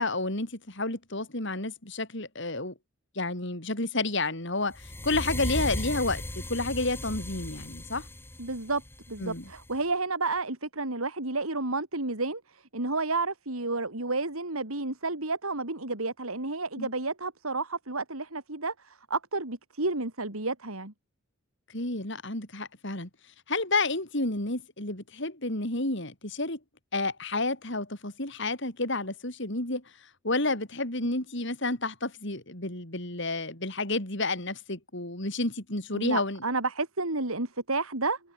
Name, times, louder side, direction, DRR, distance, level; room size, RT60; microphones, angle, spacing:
voice 1, 0.0-2.7 3.2-6.2 6.5-8.1 9.2-9.4 16.8-16.9 21.7-23.1 23.5-26.6 26.9-29.8 30.2-36.4, left 2 dB, 55° left, 4.3 m, -30 dB
sound 1, 4.7-9.8, left 1 dB, 10° left, 3.9 m, -36 dB
voice 2, 8.4-8.8 9.1-20.9 35.9-38.2, right 3 dB, 80° right, 3.8 m, -31 dB
head